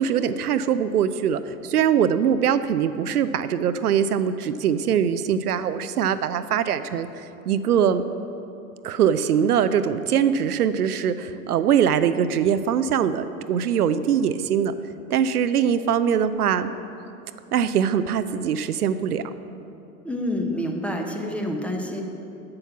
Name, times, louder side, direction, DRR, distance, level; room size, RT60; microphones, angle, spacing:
voice 1, 0.0-8.0 8.8-14.7 15.1-16.7 17.5-19.2, right 8 dB, 80° right, 12 dB, 0.5 m, -22 dB
voice 2, 20.0-22.0, left 1 dB, 5° left, 2 dB, 0.9 m, -28 dB
8.5 x 7.7 x 5.9 m, 2.8 s
figure-of-eight pair, 95°, 45 cm